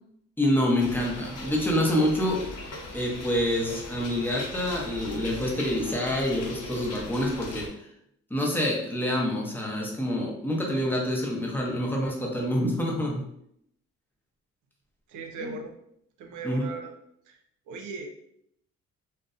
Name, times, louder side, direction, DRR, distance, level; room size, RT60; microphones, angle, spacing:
voice 1, 0.4-2.6 2.9-7.7 8.3-13.3 15.4-15.6 16.4-16.7, left 1 dB, 5° left, -2 dB, 0.7 m, -27 dB
sound 1, 0.8-7.7, left 1 dB, 55° left, 0.7 m, -40 dB
voice 2, 15.1-15.7 16.2-16.9 17.3-17.4 17.7-18.1, right 5 dB, 80° right, 4 dB, 0.5 m, -37 dB
2.5 x 2.1 x 2.4 m, 0.71 s
cardioid pair, 90°, 30 cm